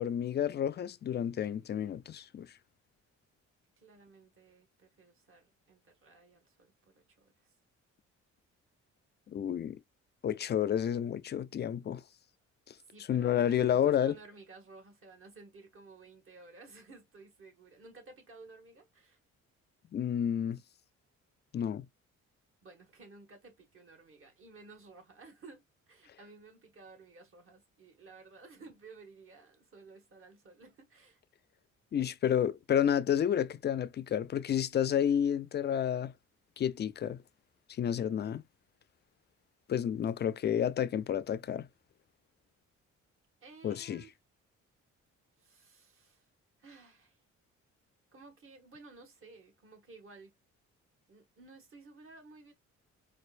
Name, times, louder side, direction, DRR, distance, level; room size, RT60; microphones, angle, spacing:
voice 1, 0.0-2.5 9.3-9.8 10.2-12.0 12.7-12.8 13.1-14.1 19.9-20.6 21.5-21.9 31.9-36.1 36.6-37.2 37.7-38.4 39.7-41.7 43.6-44.0, left 9 dB, 35° left, 0.4 m, -30 dB
voice 2, 3.8-7.5 12.9-19.2 22.6-31.2 43.4-44.1 45.4-46.3 46.6-47.2 48.1-50.3 51.1-52.5, right 3 dB, 45° right, 1.6 m, -55 dB
4.3 x 2.5 x 2.5 m
cardioid pair, 90°, 30 cm